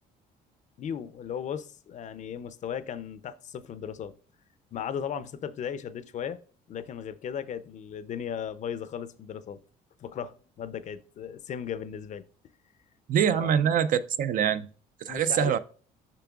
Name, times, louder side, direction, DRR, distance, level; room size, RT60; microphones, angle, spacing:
voice 1, 0.8-4.2 4.7-6.4 6.7-9.6 10.0-12.2 13.3-13.5 15.1-15.6, left 8 dB, 45° left, 0.5 m, -36 dB
voice 2, 13.1-14.7 15.0-15.6, right 8 dB, 55° right, 0.4 m, -24 dB
6.9 x 5.9 x 2.3 m
cardioid pair, 110°, 17 cm